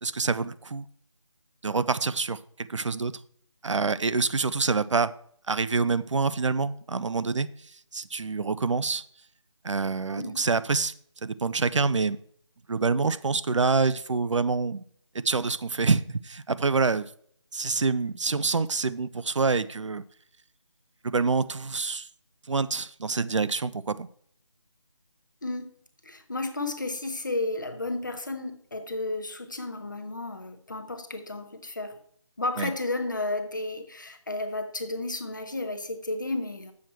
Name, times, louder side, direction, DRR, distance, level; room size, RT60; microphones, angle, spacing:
voice 1, 0.0-0.8 1.6-3.2 3.6-5.1 5.5-9.0 9.6-10.9 11.2-12.2 12.7-14.8 15.2-17.1 17.5-20.0 21.0-22.1 22.5-24.1 32.6-32.7, right 4 dB, 70° right, 0.5 m, -26 dB
voice 2, 25.4-25.8 26.0-32.0 32.4-36.7, left 2 dB, 40° left, 0.9 m, -32 dB
7.6 x 7.2 x 4.4 m
figure-of-eight pair, 180°, 16 cm